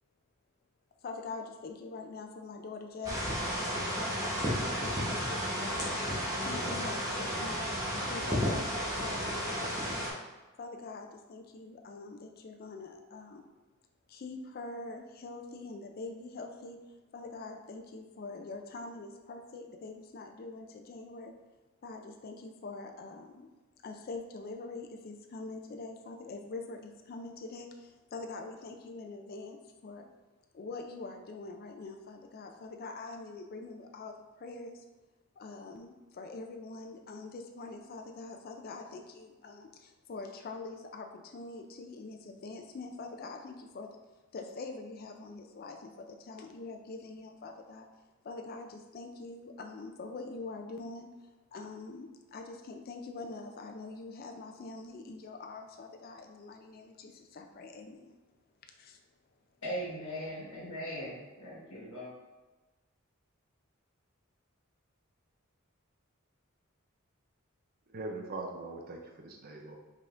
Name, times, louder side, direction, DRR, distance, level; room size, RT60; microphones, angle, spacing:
voice 1, 1.0-3.5 3.9-6.1 6.4-10.1 10.6-13.4 14.1-21.3 21.8-23.5 23.8-30.1 30.5-34.9 35.4-44.0 44.3-47.9 48.2-51.1 51.5-58.2 58.8-59.0, left 3 dB, 45° left, 4 dB, 0.4 m, -44 dB
sound 1, 3.0-10.1, equal, 15° right, 0.9 m, -33 dB
voice 2, 59.6-62.1, equal, 90° left, -7 dB, 1.3 m, -39 dB
voice 3, 67.9-69.8, right 2 dB, 45° right, 2 dB, 0.5 m, -41 dB
5.4 x 3.6 x 2.5 m, 1.2 s
head